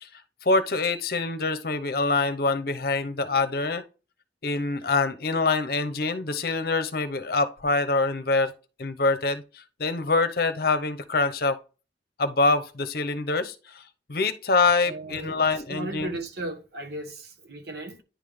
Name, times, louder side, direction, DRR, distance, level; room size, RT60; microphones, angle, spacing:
voice 1, 0.0-3.8 4.4-8.5 8.8-11.6 12.2-13.8 14.1-16.2, left 3 dB, 55° left, 0.8 m, -25 dB
voice 2, 14.9-15.4 15.7-18.0, right 2 dB, 60° right, 1.3 m, -36 dB
10.0 x 3.6 x 3.5 m
head